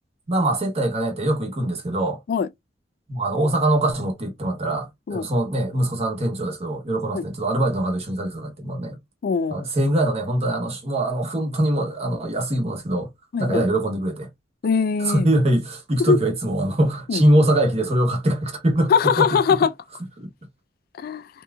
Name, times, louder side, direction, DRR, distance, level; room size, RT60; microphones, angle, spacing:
voice 1, 0.3-2.2 3.1-9.0 9.5-13.1 13.4-14.3 15.0-19.4 20.2-20.3, right 1 dB, 35° right, 1.0 m, -23 dB
voice 2, 9.2-9.7 13.3-13.6 14.6-15.3 16.0-16.2 17.1-17.2 18.9-19.7 21.0-21.3, left 5 dB, 55° left, 0.3 m, -21 dB
3.4 x 3.0 x 2.2 m
head